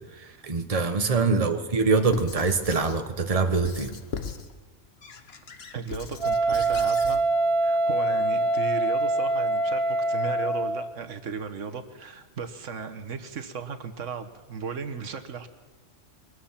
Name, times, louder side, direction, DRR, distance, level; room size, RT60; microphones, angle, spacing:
voice 1, 0.1-3.9, right 4 dB, 30° right, 6 dB, 1.3 m, -24 dB
Squeak / Writing, 2.1-3.0 3.6-4.5 5.0-7.2, left 5 dB, 55° left, 1.4 m, -38 dB
voice 2, 5.7-7.2 7.6-15.5, right 5 dB, 85° right, 7 dB, 1.5 m, -35 dB
Wind instrument woodwind instrument, 6.2-10.9, right 2 dB, 60° right, 1.0 m, -24 dB
23.0 x 20.0 x 5.9 m, 1.3 s
omnidirectional pair, 1.3 m